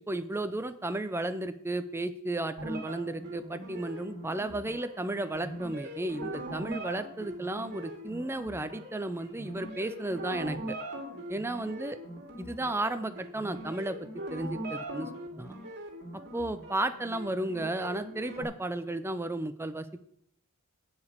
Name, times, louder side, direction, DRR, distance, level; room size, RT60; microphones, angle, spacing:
voice 1, 0.0-10.8 11.3-12.0 12.4-15.1 15.4-15.6 16.1-20.0, right 2 dB, 10° right, 10 dB, 0.5 m, -34 dB
sound 1, 2.6-18.4, right 1 dB, 50° right, 2.5 m, -41 dB
10.0 x 5.1 x 8.0 m, 0.70 s
head